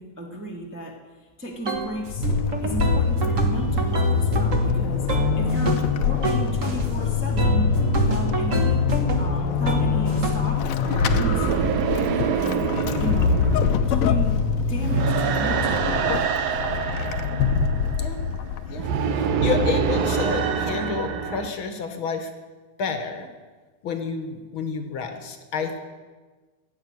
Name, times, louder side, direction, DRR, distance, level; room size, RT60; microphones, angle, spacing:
voice 1, 0.0-2.3 2.6-8.9 9.2-12.7 13.0-16.1, equal, 10° right, -1 dB, 0.8 m, -34 dB
sound 1, 1.6-1.9 2.2-6.0 6.2-6.9 7.4-10.5, equal, 45° right, 1.0 m, -24 dB
Vehicle / Accelerating revving vroom / Squeak, 1.8-19.0, left 6 dB, 70° left, 1.9 m, -25 dB
sound 2, 10.3-21.5, right 6 dB, 65° right, 1.8 m, -26 dB
voice 2, 18.7-22.3 22.8-23.3 23.8-25.8, left 5 dB, 50° left, 7 dB, 1.7 m, -30 dB
15.5 x 8.6 x 9.6 m, 1.3 s
omnidirectional pair, 3.7 m